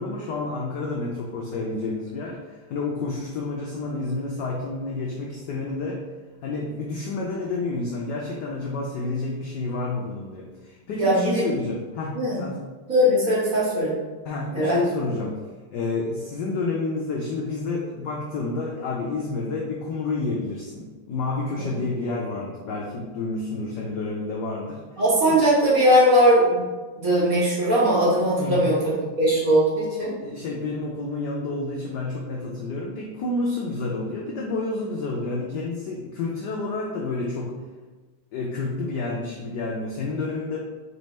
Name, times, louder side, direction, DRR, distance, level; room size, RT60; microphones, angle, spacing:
voice 1, 0.0-6.0 6.4-12.6 14.2-15.4 15.7-24.8 25.3-25.4 28.3-28.7 30.2-37.6 38.3-40.6, left 3 dB, 75° left, -2 dB, 0.9 m, -29 dB
voice 2, 11.0-11.5 12.1-12.4 12.9-13.9 14.5-14.8 25.0-26.6 27.0-28.8 29.1-30.1, equal, 45° right, -8 dB, 1.4 m, -19 dB
3.4 x 3.3 x 4.1 m, 1.3 s
omnidirectional pair, 2.4 m